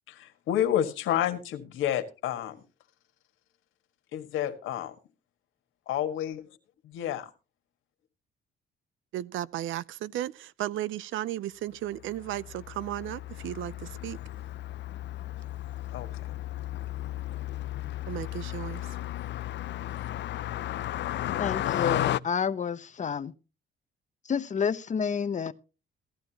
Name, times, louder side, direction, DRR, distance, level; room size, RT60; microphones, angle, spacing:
voice 1, 0.1-2.6 4.1-4.9 5.9-6.4 6.8-7.3 15.9-16.1, left 11 dB, 90° left, 1.7 m, -29 dB
voice 2, 9.1-14.2 18.1-18.9, right 13 dB, 80° right, 0.6 m, -35 dB
Car passing by, 12.1-22.2, left 14 dB, 65° left, 0.5 m, -34 dB
voice 3, 21.4-23.3 24.3-25.5, left 6 dB, 40° left, 0.9 m, -29 dB
16.5 x 12.0 x 2.9 m
cardioid pair, 90°, 20 cm